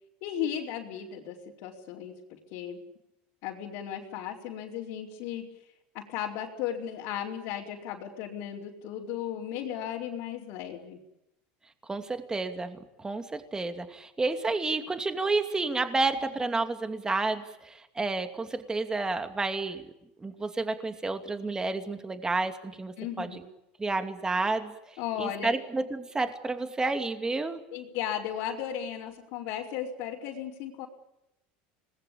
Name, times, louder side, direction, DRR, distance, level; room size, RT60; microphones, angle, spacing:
voice 1, 0.2-1.4 1.6-2.8 3.4-5.5 5.9-11.0 23.0-23.4 25.0-25.6 27.7-30.9, left 10 dB, 65° left, -5 dB, 4.6 m, -35 dB
voice 2, 11.8-19.9 20.2-23.4 23.8-27.6, right 3 dB, 15° right, 7 dB, 2.6 m, -30 dB
26.5 x 20.5 x 8.6 m, 0.88 s
supercardioid pair, 115°, 5 cm